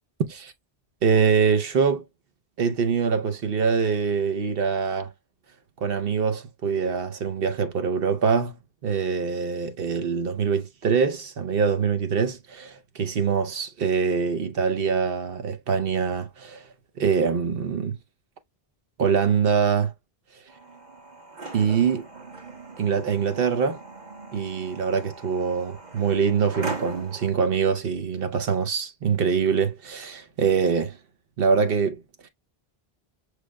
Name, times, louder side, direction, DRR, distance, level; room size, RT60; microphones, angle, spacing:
voice 1, 1.0-2.0 2.6-5.1 5.8-16.7 17.0-18.0 19.0-19.9 21.5-22.1 22.8-23.8 24.3-31.0 31.4-32.3, right 6 dB, 65° right, 0.9 m, -24 dB
sound 1, 20.5-27.3, right 3 dB, 45° right, 1.2 m, -39 dB
6.2 x 3.2 x 2.2 m
omnidirectional pair, 1.1 m